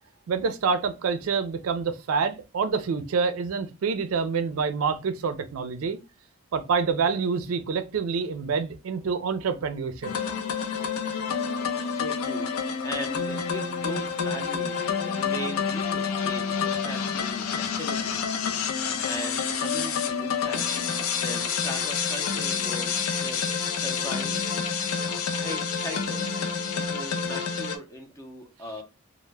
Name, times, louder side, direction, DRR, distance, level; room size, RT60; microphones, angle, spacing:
voice 1, 0.3-6.0 6.5-10.1, right 5 dB, 85° right, 0.4 m, -27 dB
sound 1, 10.0-27.8, left 6 dB, 85° left, 0.4 m, -28 dB
voice 2, 11.6-24.6 24.9-26.4 26.7-28.8, equal, 15° left, 0.5 m, -39 dB
2.1 x 2.0 x 3.2 m
head